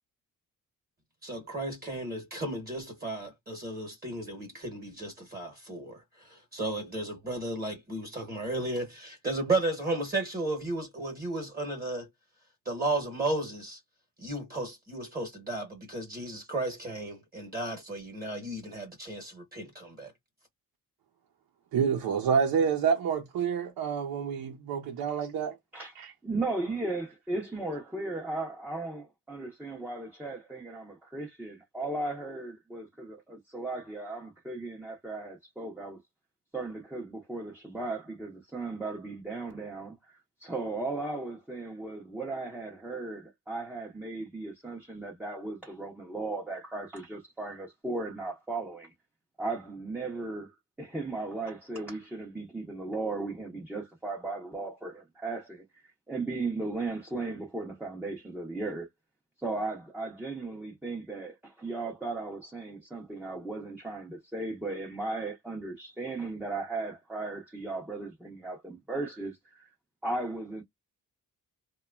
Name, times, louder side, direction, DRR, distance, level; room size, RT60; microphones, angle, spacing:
voice 1, 1.2-12.1 12.6-13.8 14.2-20.1, right 2 dB, 25° right, 0.9 m, -34 dB
voice 2, 21.7-25.6 26.0-26.1, right 7 dB, 80° right, 0.6 m, -28 dB
voice 3, 26.2-36.0 36.5-40.0 40.4-48.9 49.4-50.5 50.8-58.9 59.4-69.7 70.0-70.6, right 2 dB, 5° right, 0.6 m, -36 dB
2.9 x 2.3 x 2.2 m
wide cardioid pair, 140°, 35 cm